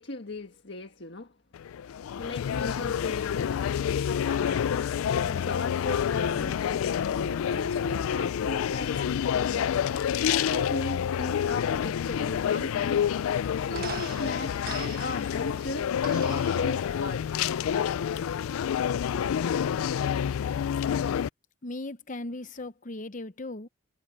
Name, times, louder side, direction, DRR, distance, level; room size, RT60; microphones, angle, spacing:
voice 1, 0.0-1.3 2.2-5.0 5.3-13.0 13.3-17.5, left 2 dB, 55° left, 1.7 m, -38 dB
sound 1, 1.5-21.3, left 8 dB, 85° left, 0.3 m, -28 dB
sound 2, 12.2-17.4, right 6 dB, 45° right, 1.1 m, -44 dB
voice 2, 21.6-23.7, left 2 dB, 40° left, 0.8 m, -37 dB
head